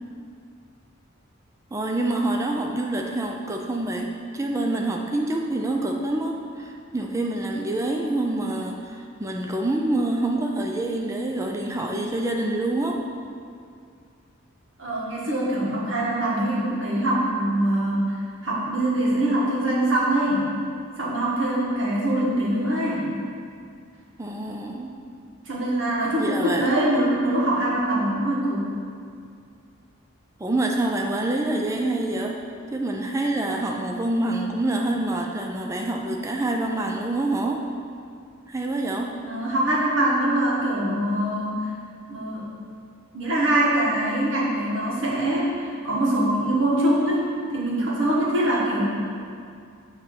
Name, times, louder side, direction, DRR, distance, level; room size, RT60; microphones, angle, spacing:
voice 1, 1.7-13.0 24.2-25.0 26.2-26.7 30.4-32.4 32.7-37.6 38.5-39.2, right 2 dB, 15° right, 1 dB, 0.4 m, -26 dB
voice 2, 14.8-20.5 21.0-23.1 25.4-28.7 39.3-41.7 42.1-42.5 43.1-47.2 47.5-48.9, right 1 dB, 60° right, -6 dB, 1.6 m, -23 dB
7.5 x 3.1 x 5.8 m, 2.4 s
head